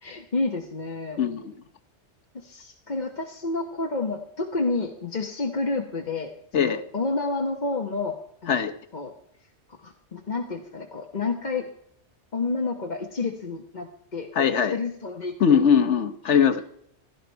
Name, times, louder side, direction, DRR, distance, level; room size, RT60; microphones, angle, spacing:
voice 1, 0.0-1.2 2.3-6.3 6.6-8.6 8.9-9.1 9.8-11.7 12.3-15.6 16.3-16.4, left 3 dB, 40° left, 2 dB, 1.2 m, -30 dB
voice 2, 1.2-1.5 6.5-6.8 8.5-8.7 14.3-14.8 15.4-16.6, left 7 dB, 75° left, 8 dB, 1.3 m, -21 dB
17.0 x 12.0 x 4.6 m, 0.70 s
omnidirectional pair, 1.2 m